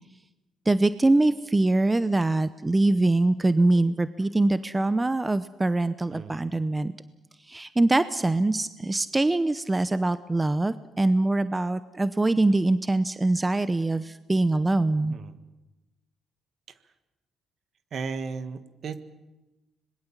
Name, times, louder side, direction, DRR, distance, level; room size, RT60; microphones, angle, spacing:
voice 1, 0.7-6.9 7.5-15.2, right 2 dB, 15° right, 13 dB, 0.7 m, -23 dB
voice 2, 17.9-19.0, right 5 dB, 55° right, 10 dB, 1.6 m, -35 dB
25.5 x 21.0 x 7.3 m, 1.1 s
cardioid pair, 90°, 0 cm